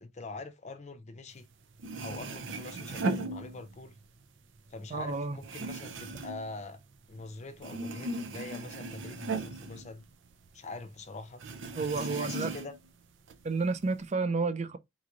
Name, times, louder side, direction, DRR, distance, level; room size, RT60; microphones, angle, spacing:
voice 1, 0.0-1.5 2.0-4.0 4.7-6.8 7.1-10.0 10.5-11.4 11.9-12.7, left 3 dB, 40° left, 0.6 m, -44 dB
sound 1, 1.5-1.6 1.8-4.0 4.4-7.3 7.6-10.6 10.9-11.0 11.4-12.9 13.3-14.0, right 2 dB, 90° right, 0.6 m, -37 dB
voice 2, 4.9-5.4 11.8-12.5 13.4-14.8, right 4 dB, 35° right, 0.4 m, -31 dB
4.0 x 3.0 x 2.4 m
head